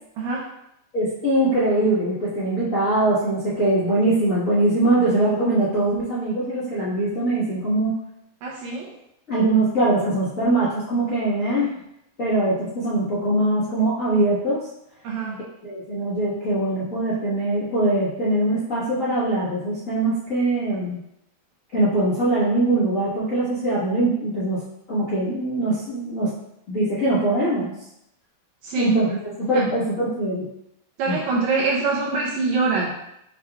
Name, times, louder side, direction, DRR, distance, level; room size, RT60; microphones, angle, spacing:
voice 1, 0.9-8.0 9.3-11.7 12.2-14.7 15.6-21.0 21.7-24.6 24.9-26.3 26.7-27.7 28.7-29.2 29.5-30.5 31.1-31.2, right 2 dB, 85° left, -12 dB, 0.7 m, -22 dB
voice 2, 8.4-8.9 11.6-11.7 15.0-15.4 28.6-29.0 29.4-29.6 31.0-32.9, right 3 dB, 80° right, -3 dB, 1.7 m, -24 dB
6.1 x 2.3 x 3.5 m, 0.81 s
omnidirectional pair, 3.8 m